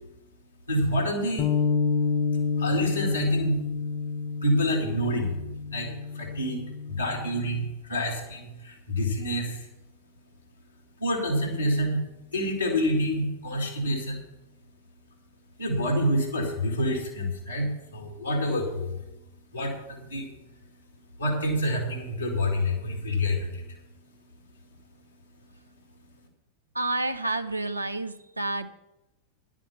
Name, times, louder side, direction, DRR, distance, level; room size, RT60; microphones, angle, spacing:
voice 1, 0.7-1.5 2.6-3.6 4.4-5.4 5.7-9.7 11.0-12.0 12.3-14.2 15.6-19.0 19.5-20.6 21.0-23.8 24.1-24.2 24.5-24.6 26.0-26.2, equal, 85° left, -4 dB, 2.1 m, -28 dB
Bass guitar, 1.4-7.6, left 5 dB, 30° left, 0.9 m, -29 dB
voice 2, 26.7-28.7, right 2 dB, 85° right, 9 dB, 0.5 m, -29 dB
10.5 x 7.3 x 6.7 m, 0.93 s
figure-of-eight pair, 90°, 0 cm